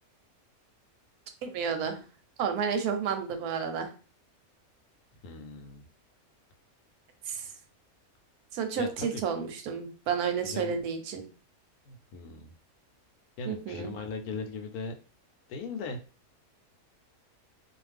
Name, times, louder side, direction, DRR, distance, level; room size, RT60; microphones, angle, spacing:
voice 1, 1.4-2.0 2.4-3.9 7.3-7.5 8.5-11.2 13.5-13.9, right 6 dB, 85° right, 7 dB, 1.1 m, -31 dB
voice 2, 5.2-5.8 8.8-9.2 10.4-10.7 11.8-12.5 13.4-14.9 15.5-16.0, left 4 dB, 80° left, 5 dB, 1.1 m, -38 dB
2.5 x 2.4 x 3.3 m, 0.36 s
omnidirectional pair, 1.6 m